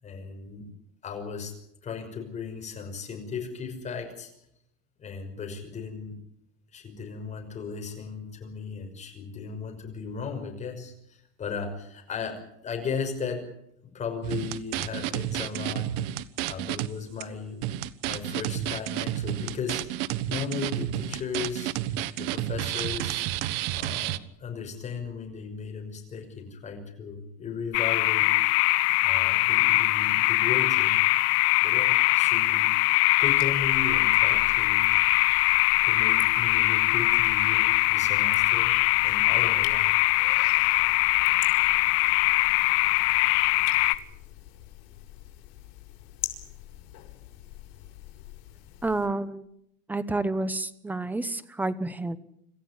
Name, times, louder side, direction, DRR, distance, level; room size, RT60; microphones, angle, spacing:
voice 1, 0.0-0.7 1.0-1.5 1.8-4.3 5.0-6.1 6.7-13.4 13.9-15.9 16.4-17.6 18.0-19.8 20.3-21.7 22.2-23.3 23.8-28.3 29.0-31.0 31.6-32.7 33.2-34.9 35.8-38.7 39.0-39.9, left 5 dB, 25° left, 4 dB, 5.9 m, -36 dB
sound 1, 14.2-16.9 17.2-17.3 17.6-24.2, right 13 dB, 75° right, 1.2 m, -31 dB
sound 2, 27.7-43.9, left 21 dB, 50° left, 1.0 m, -22 dB
sound 3, 33.2-49.1, left 14 dB, 80° left, 5.8 m, -44 dB
voice 2, 48.8-49.5 49.9-52.2, right 2 dB, 5° right, 13 dB, 1.0 m, -29 dB
27.0 x 14.5 x 9.7 m, 0.77 s
cardioid pair, 160°, 30 cm